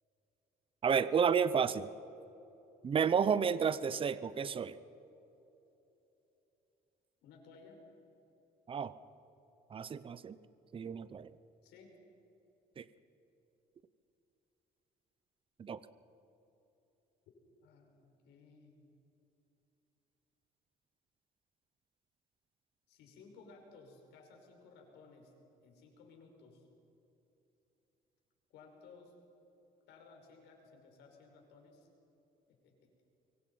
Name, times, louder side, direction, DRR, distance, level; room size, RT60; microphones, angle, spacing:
voice 1, 0.8-1.9 2.8-4.8 8.7-8.9 9.7-10.4 10.7-11.3 12.8-12.9 15.6-15.8, right 6 dB, 30° right, 15 dB, 0.8 m, -31 dB
voice 2, 7.2-7.8 11.6-11.9 17.6-18.9 22.9-25.3 25.6-26.7 28.5-29.1 29.9-31.9 32.5-32.9, left 4 dB, 85° left, 2 dB, 5.8 m, -58 dB
24.5 x 24.0 x 5.7 m, 2.9 s
cardioid pair, 110°, 17 cm